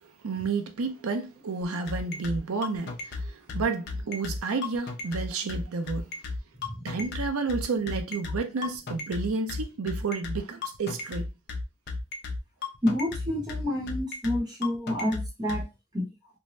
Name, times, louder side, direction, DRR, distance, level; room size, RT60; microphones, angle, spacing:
voice 1, 0.2-6.1 6.8-11.3, right 4 dB, 80° right, 0.5 m, -31 dB
sound 1, 1.6-15.6, left 3 dB, 50° left, 0.6 m, -34 dB
voice 2, 12.8-15.6 15.9-16.1, left 1 dB, 20° right, 1.0 m, -29 dB
2.6 x 2.1 x 3.1 m
head